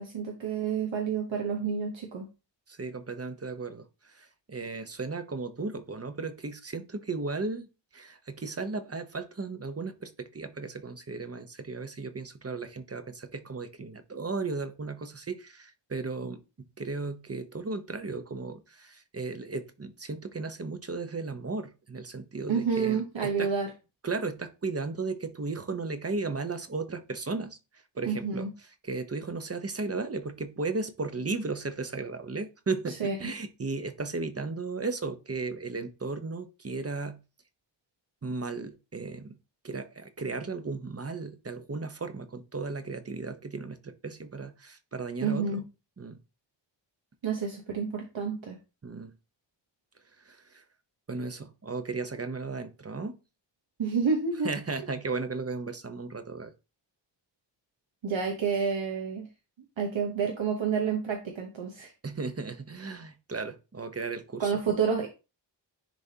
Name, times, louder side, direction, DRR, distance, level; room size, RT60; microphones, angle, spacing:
voice 1, 0.0-2.3 22.5-23.7 28.0-28.5 32.9-33.2 45.2-45.6 47.2-48.6 53.8-54.5 58.0-59.3 59.8-61.9 64.4-65.1, right 6 dB, 90° right, 1.0 m, -29 dB
voice 2, 2.7-7.7 7.9-23.5 24.0-28.4 28.8-37.2 38.2-39.4 39.6-45.6 46.0-46.2 48.8-49.1 50.2-50.6 51.1-53.2 54.4-56.5 62.0-64.5, right 3 dB, 30° right, 0.7 m, -35 dB
10.5 x 3.4 x 2.8 m
wide cardioid pair, 80°, 45 cm